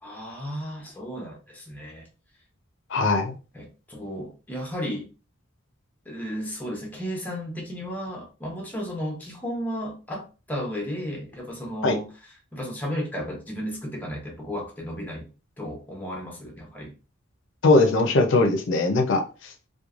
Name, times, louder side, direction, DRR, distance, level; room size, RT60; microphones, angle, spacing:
voice 1, 0.0-2.1 3.5-5.1 6.1-15.3 15.6-16.9, equal, 10° left, -1 dB, 0.7 m, -34 dB
voice 2, 2.9-3.3 11.8-12.0 17.6-19.2, left 3 dB, 60° left, 4 dB, 0.5 m, -20 dB
3.0 x 2.2 x 2.4 m, 0.33 s
head